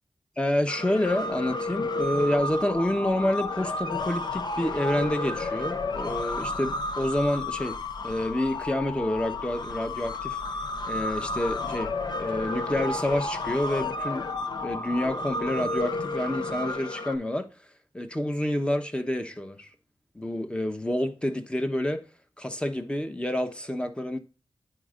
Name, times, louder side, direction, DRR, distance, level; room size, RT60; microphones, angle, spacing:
voice 1, 0.4-10.4 10.8-14.3 14.6-17.5 17.9-19.7 20.1-22.0 22.4-24.2, left 1 dB, 10° left, 1.0 m, -28 dB
sound 1, 0.7-17.2, left 2 dB, 60° left, 0.7 m, -32 dB
9.8 x 4.3 x 2.4 m
cardioid pair, 55°, 8 cm